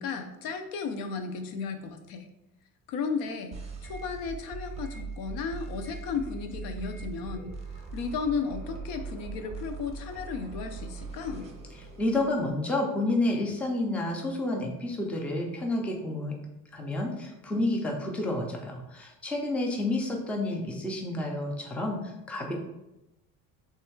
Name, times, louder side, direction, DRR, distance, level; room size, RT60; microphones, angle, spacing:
voice 1, 0.0-2.3 2.9-3.6 3.8-7.5 7.9-11.5, left 5 dB, 80° left, 7 dB, 0.7 m, -34 dB
sound 1, 3.5-12.5, right 4 dB, 20° right, 0.7 m, -40 dB
voice 2, 12.0-16.3 16.7-22.5, left 2 dB, 5° left, 1 dB, 0.3 m, -30 dB
3.4 x 3.2 x 4.5 m, 0.94 s
cardioid pair, 175°, 34 cm